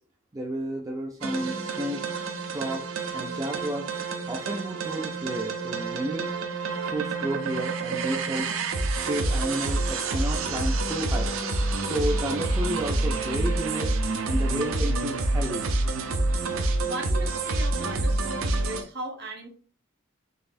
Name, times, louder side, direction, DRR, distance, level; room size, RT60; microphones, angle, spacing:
voice 1, 0.3-2.0 2.5-2.8 3.1-3.9 4.2-6.2 6.9-8.5 9.1-11.3 11.8-13.9 14.3-15.7, right 1 dB, 15° right, -1 dB, 0.4 m, -31 dB
sound 1, 1.2-18.8, right 2 dB, 70° right, 0.6 m, -28 dB
voice 2, 16.8-19.5, right 1 dB, 50° right, 3 dB, 0.9 m, -37 dB
4.0 x 3.4 x 2.5 m, 0.43 s
head